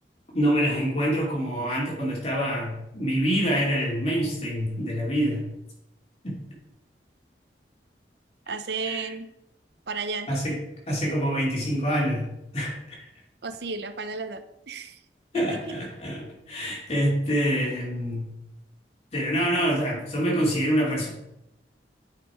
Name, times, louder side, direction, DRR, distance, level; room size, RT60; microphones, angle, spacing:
voice 1, 0.3-5.4 6.2-6.4 8.8-9.1 10.3-10.6 10.9-13.1 15.3-18.3 19.1-21.1, equal, 35° left, -3 dB, 2.7 m, -26 dB
voice 2, 8.5-9.3 9.9-10.3 13.4-15.0 15.3-15.5, right 4 dB, 70° right, 10 dB, 0.7 m, -33 dB
8.9 x 5.9 x 4.9 m, 0.86 s
head